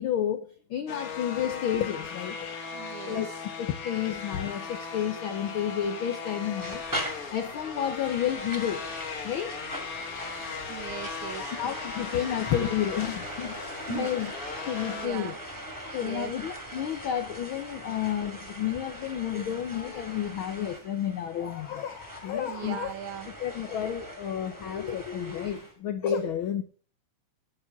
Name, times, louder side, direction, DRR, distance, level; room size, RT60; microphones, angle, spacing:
voice 1, 0.0-2.4 3.1-3.3 3.6-6.8 7.3-8.9 9.2-9.5 11.4-13.6 13.9-14.3 14.7-15.3 15.9-22.9 23.4-26.6, left 9 dB, 80° left, 1.1 m, -31 dB
sound 1, 0.9-15.1, left 5 dB, 50° left, 1.0 m, -38 dB
voice 2, 2.7-3.4 10.7-11.6 13.9-14.3 14.9-15.4 16.0-16.3 22.5-23.3 24.4-24.5, right 12 dB, 75° right, 2.3 m, -39 dB
sound 2, 6.6-25.7, right 1 dB, 5° right, 2.5 m, -41 dB
9.9 x 8.8 x 5.9 m
omnidirectional pair, 3.4 m